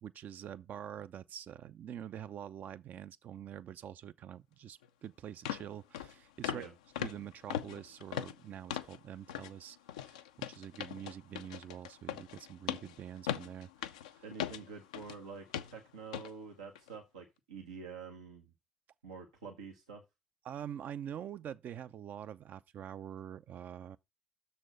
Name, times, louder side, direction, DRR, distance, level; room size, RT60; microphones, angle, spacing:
voice 1, 0.0-6.6 7.0-14.2 20.4-24.0, right 9 dB, 60° right, 0.5 m, -46 dB
sound 1, 4.8-4.9 5.5-5.7 5.9-6.1 6.4-6.7 7.0-9.0 9.3-9.5 9.9-15.2 15.5-15.8 16.1-16.3 16.8-16.9, left 10 dB, 85° left, 0.4 m, -39 dB
voice 2, 14.2-18.5 19.0-20.0, right 5 dB, 90° right, 1.0 m, -47 dB
6.7 x 4.2 x 6.3 m
hypercardioid pair, 45°, 3 cm